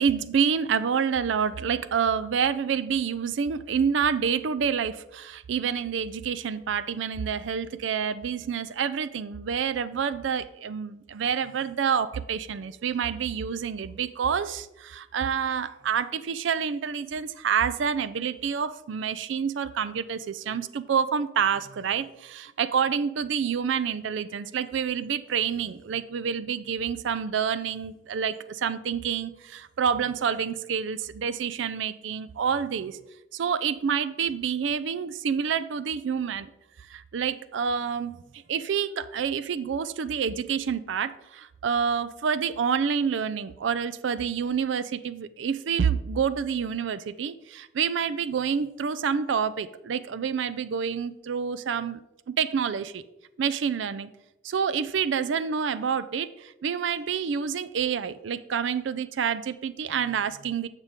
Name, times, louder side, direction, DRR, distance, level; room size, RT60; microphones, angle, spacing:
voice 1, 0.0-33.0 33.3-36.5 36.9-38.2 38.5-52.0 52.3-53.0 53.4-54.1 54.4-60.7, right 7 dB, 80° right, 15 dB, 0.4 m, -28 dB
14.5 x 5.2 x 3.6 m, 0.94 s
head